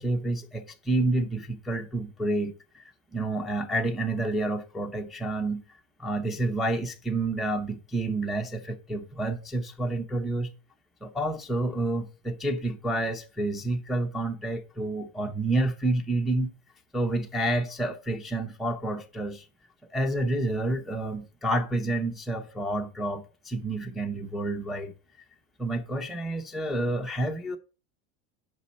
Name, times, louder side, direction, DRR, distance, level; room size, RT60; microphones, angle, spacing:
voice 1, 0.0-5.6 6.0-10.5 11.0-16.5 16.9-19.4 19.9-24.9 25.6-27.6, right 2 dB, ahead, 0.4 m, -29 dB
6.2 x 5.3 x 4.1 m
supercardioid pair, 130°, 40 cm